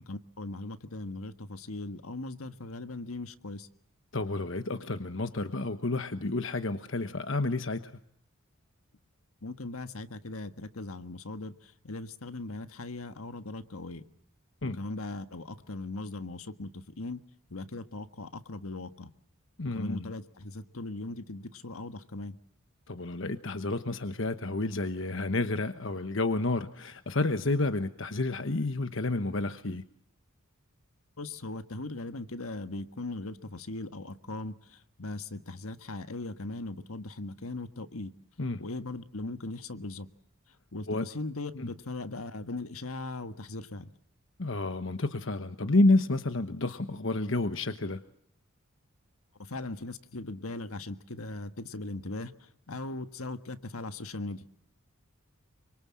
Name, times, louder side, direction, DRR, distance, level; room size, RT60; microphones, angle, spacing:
voice 1, 0.1-3.7 9.4-14.0 14.6-17.2 17.5-19.1 19.7-22.4 31.2-38.1 38.6-40.1 40.7-43.9 49.4-52.3 52.7-54.4, left 2 dB, 80° left, 10 dB, 1.6 m, -39 dB
voice 2, 4.1-7.9 14.6-14.8 19.6-20.1 22.9-29.8 38.4-38.6 40.9-41.1 41.6-41.7 44.4-48.0, left 2 dB, 60° left, 10 dB, 1.1 m, -30 dB
26.5 x 25.0 x 7.5 m, 0.70 s
head